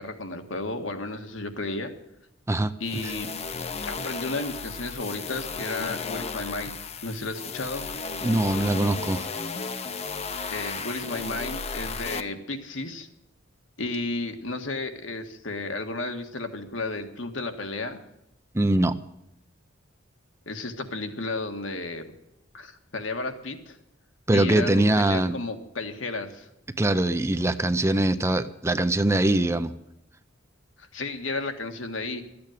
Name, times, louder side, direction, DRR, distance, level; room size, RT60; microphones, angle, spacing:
voice 1, 0.0-1.9 2.8-3.4 3.8-6.7 7.0-7.9 10.5-13.1 13.8-18.0 20.4-22.1 22.5-23.8 24.3-26.5 30.8-32.2, left 2 dB, 70° left, 5 dB, 1.7 m, -33 dB
sound 1, 2.8-12.2, left 4 dB, 30° left, 0.8 m, -34 dB
voice 2, 8.2-9.3 18.5-19.0 24.3-25.4 26.8-29.7, right 1 dB, 15° right, 11 dB, 0.5 m, -22 dB
13.5 x 8.7 x 9.1 m, 0.83 s
head